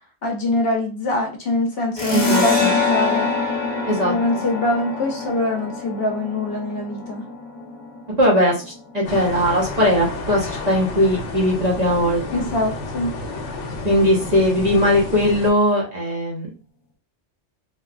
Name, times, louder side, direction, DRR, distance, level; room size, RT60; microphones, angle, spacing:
voice 1, 0.2-3.3 4.0-7.2 12.3-13.1, left 2 dB, 60° left, 1 dB, 0.9 m, -23 dB
sound 1, 2.0-9.1, left 4 dB, 40° left, 1.1 m, -25 dB
voice 2, 2.1-2.7 3.9-4.4 8.2-8.5 8.9-12.4 13.8-16.5, equal, 40° right, -4 dB, 0.9 m, -19 dB
sound 2, 9.0-15.5, left 3 dB, 85° left, 0.9 m, -31 dB
3.2 x 2.3 x 2.4 m, 0.33 s
omnidirectional pair, 1.2 m